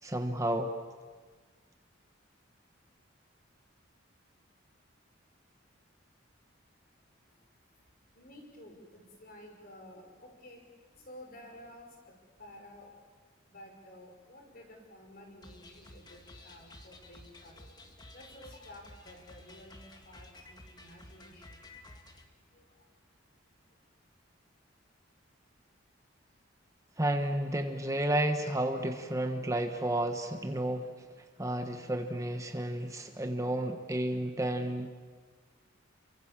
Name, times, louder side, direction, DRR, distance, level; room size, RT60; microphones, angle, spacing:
voice 1, 0.0-0.7 27.0-30.9 31.4-34.9, right 1 dB, 15° right, 6 dB, 1.1 m, -31 dB
voice 2, 8.1-13.0 13.5-21.6 22.5-22.9, left 1 dB, 45° left, 3 dB, 5.5 m, -53 dB
sound 1, 15.4-22.3, left 2 dB, 20° left, 2.0 m, -53 dB
29.5 x 24.5 x 7.4 m, 1.5 s
head